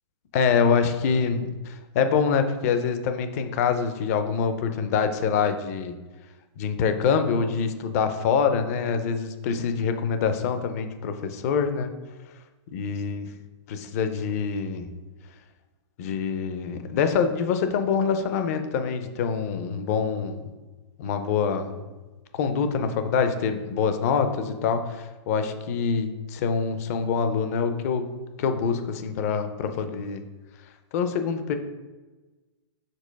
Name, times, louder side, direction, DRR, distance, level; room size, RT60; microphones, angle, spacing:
voice 1, 0.3-6.0 6.6-11.9 12.7-13.3 13.7-14.9 16.0-20.5 21.0-21.8 22.3-28.0 28.4-30.2 30.9-31.6, left 6 dB, 30° left, 8 dB, 0.5 m, -25 dB
5.3 x 3.9 x 5.2 m, 1.2 s
hypercardioid pair, 165°, 15 cm